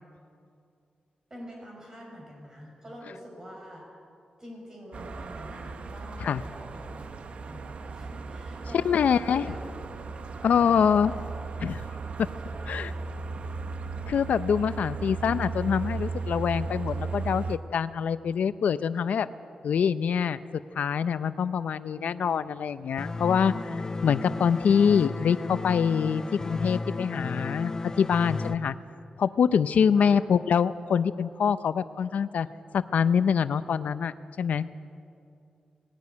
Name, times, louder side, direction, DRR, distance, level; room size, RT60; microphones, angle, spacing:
voice 1, 1.3-3.9 4.4-7.1 7.4-9.7 10.5-11.4 12.4-13.1 14.8-15.0 30.0-30.2, equal, 25° right, -1 dB, 6.0 m, -46 dB
sound 1, 4.9-17.6, right 4 dB, 55° right, 0.9 m, -36 dB
voice 2, 8.7-9.4 10.4-11.1 11.6-11.9 12.2-12.3 12.7-12.9 14.1-19.3 19.6-20.4 20.8-28.7 29.2-32.5 32.7-34.7, left 7 dB, 90° left, 13 dB, 0.6 m, -25 dB
sound 2, 23.0-28.5, left 3 dB, 25° left, 0.5 m, -33 dB
20.0 x 16.5 x 9.5 m, 2.4 s
wide cardioid pair, 175°, 2 cm